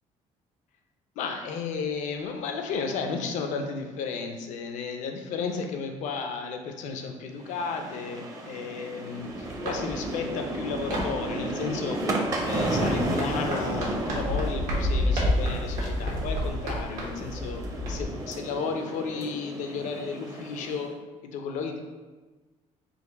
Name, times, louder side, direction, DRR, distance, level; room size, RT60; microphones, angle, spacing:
voice 1, 1.2-12.0 12.4-17.6 17.9-20.9 21.2-21.8, left 5 dB, 75° left, 4 dB, 0.6 m, -33 dB
sound 1, 7.4-20.9, right 2 dB, 30° right, 0.5 m, -33 dB
sound 2, 9.2-18.0, left 1 dB, 90° right, 1.2 m, -31 dB
4.1 x 2.5 x 4.1 m, 1.3 s
cardioid pair, 140°, 13 cm